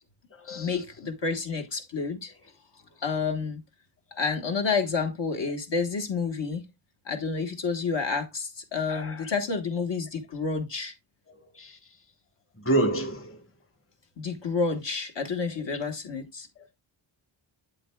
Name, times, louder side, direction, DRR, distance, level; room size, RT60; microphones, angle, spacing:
voice 1, 0.5-2.3 3.0-3.6 4.2-6.6 7.0-10.9 14.2-16.5, left 4 dB, 60° left, 1.4 m, -29 dB
voice 2, 8.9-9.2 11.6-11.7 12.6-13.4, right 2 dB, 25° left, 1.3 m, -27 dB
7.9 x 7.8 x 2.3 m
wide cardioid pair, 90°, 49 cm